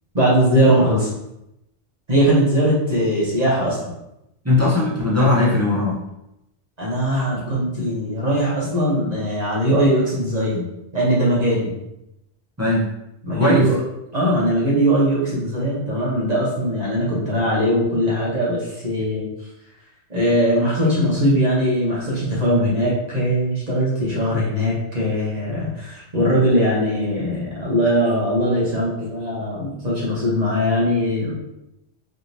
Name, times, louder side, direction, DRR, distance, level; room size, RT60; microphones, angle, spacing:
voice 1, 0.1-1.1 2.1-3.9 6.8-11.7 13.2-13.8 14.1-19.3 20.1-31.3, equal, 40° right, -6 dB, 0.9 m, -20 dB
voice 2, 4.4-6.0 12.6-12.9 13.4-13.7, left 2 dB, 15° right, -6 dB, 0.6 m, -18 dB
3.4 x 2.9 x 2.7 m, 0.87 s
omnidirectional pair, 1.2 m